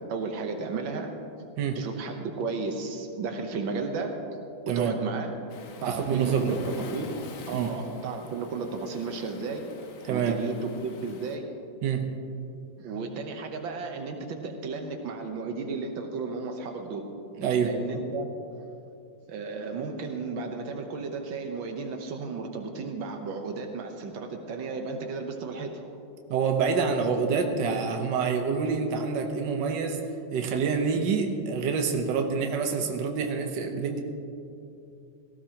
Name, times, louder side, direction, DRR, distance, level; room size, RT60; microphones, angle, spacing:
voice 1, 0.1-1.1 1.8-4.1 4.8-5.3 5.8-6.6 6.9-7.1 7.5-9.6 10.1-11.5 12.8-17.0 17.6-18.3 19.3-25.7, right 4 dB, 85° right, 3 dB, 1.8 m, -33 dB
voice 2, 4.7-5.0 5.8-6.6 7.5-7.8 10.0-10.4 11.8-12.1 17.4-17.7 26.3-30.0 30.3-34.0, right 5 dB, 70° right, 3 dB, 1.7 m, -27 dB
Waves surf, 5.5-11.4, left 5 dB, 65° left, 1.5 m, -46 dB
17.0 x 16.0 x 2.9 m, 2.6 s
omnidirectional pair, 2.1 m